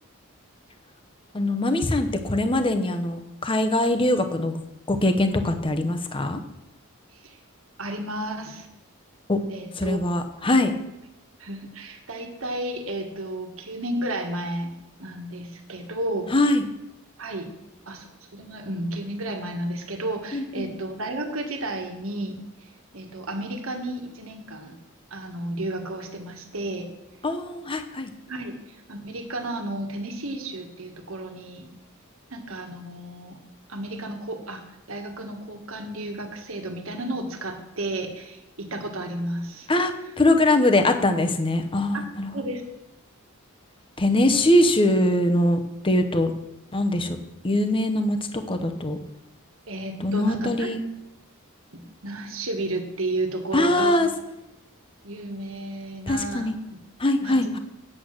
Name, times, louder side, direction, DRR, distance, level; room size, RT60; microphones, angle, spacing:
voice 1, 1.3-4.6 4.9-6.4 9.3-9.4 9.8-10.7 16.3-16.7 20.3-20.7 27.2-28.1 39.7-42.4 44.0-46.3 46.7-47.2 47.4-48.2 48.5-49.0 50.0-50.8 53.5-54.1 56.1-56.5 57.0-57.6, left 1 dB, 25° left, 7 dB, 0.8 m, -22 dB
voice 2, 7.8-8.7 9.5-10.0 11.4-14.7 15.0-16.3 17.2-17.5 17.9-24.8 25.1-26.9 28.3-31.7 32.3-33.4 33.7-34.6 34.9-39.7 41.9-42.0 42.3-42.6 49.7-50.7 51.7-54.1 55.0-56.5 57.2-57.4, right 1 dB, 65° right, 4 dB, 1.5 m, -32 dB
8.6 x 7.7 x 6.4 m, 0.89 s
head